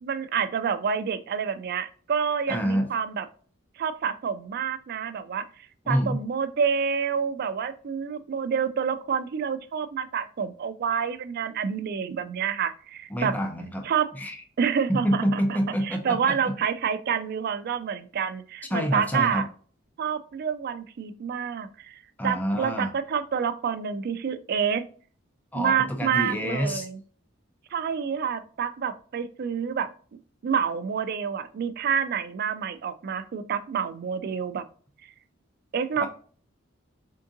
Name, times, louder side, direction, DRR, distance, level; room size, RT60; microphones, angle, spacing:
voice 1, 0.0-3.3 3.8-5.5 5.9-13.4 13.8-14.1 14.6-15.6 15.8-19.4 20.0-24.8 25.6-27.0 27.7-29.9 30.4-34.6 35.7-36.1, right 7 dB, 50° right, 11 dB, 0.3 m, -28 dB
voice 2, 2.5-2.9 5.8-6.2 13.1-14.4 14.9-16.5 18.7-19.4 22.2-22.9 25.5-26.9 36.0-36.1, equal, 10° left, 3 dB, 0.5 m, -27 dB
3.7 x 3.6 x 2.6 m, 0.43 s
head